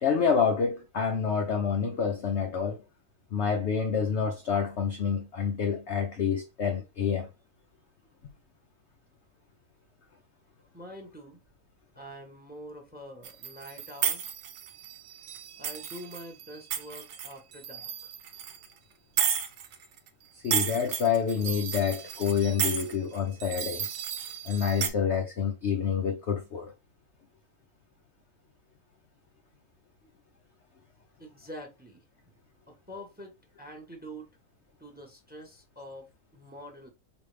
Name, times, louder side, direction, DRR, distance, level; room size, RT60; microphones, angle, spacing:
voice 1, 0.0-2.8 3.3-7.3 20.3-23.9 24.4-26.7, left 6 dB, 70° left, 0.6 m, -28 dB
voice 2, 10.7-11.4 11.9-14.3 15.6-18.1 31.2-32.0 32.7-34.3 34.8-36.9, equal, 5° right, 0.8 m, -45 dB
sound 1, 13.2-18.7 19.2-20.1 20.4-24.9, right 8 dB, 85° right, 1.4 m, -33 dB
5.1 x 2.7 x 3.2 m
omnidirectional pair, 1.9 m